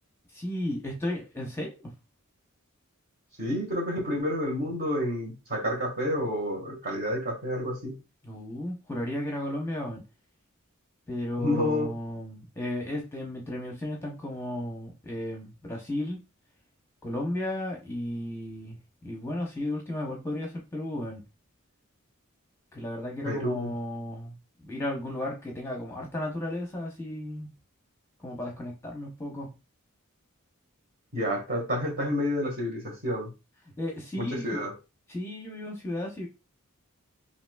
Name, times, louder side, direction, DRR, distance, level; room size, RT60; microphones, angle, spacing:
voice 1, 0.3-1.9 8.2-10.0 11.1-16.2 17.0-18.8 19.0-21.2 22.7-24.3 24.6-27.5 28.2-29.5 33.8-34.6 35.1-36.3, left 1 dB, 10° left, 0 dB, 0.8 m, -34 dB
voice 2, 3.4-7.9 11.4-11.9 23.2-23.7 31.1-33.3 34.2-34.7, left 1 dB, 45° right, -1 dB, 1.7 m, -29 dB
5.7 x 2.8 x 2.2 m, 0.28 s
head